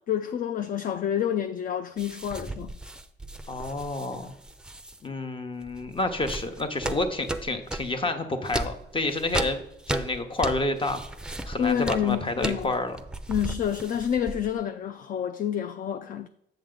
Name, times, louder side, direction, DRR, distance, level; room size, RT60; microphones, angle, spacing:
voice 1, 0.0-2.7 11.6-12.7 13.3-16.3, left 9 dB, 45° left, 0.4 m, -28 dB
sound 1, 2.0-5.0 5.6-8.0 8.4-14.6, right 2 dB, 5° right, 0.5 m, -35 dB
voice 2, 3.5-4.3 5.0-9.6 9.9-11.0 11.5-13.0, left 2 dB, 25° left, 0.9 m, -29 dB
7.9 x 6.2 x 3.9 m
cardioid pair, 90°, 20 cm